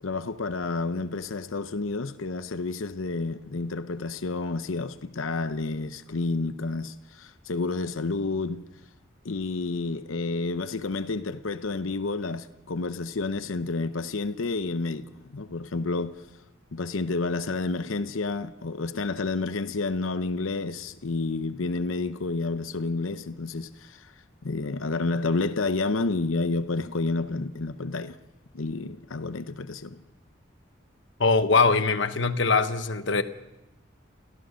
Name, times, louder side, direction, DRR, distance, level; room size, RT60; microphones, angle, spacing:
voice 1, 0.0-8.6 9.2-16.2 16.7-24.1 24.4-28.2 28.5-30.0, left 3 dB, 85° left, 0.8 m, -30 dB
voice 2, 31.2-33.2, left 4 dB, 65° left, 1.1 m, -22 dB
29.0 x 15.0 x 6.4 m
head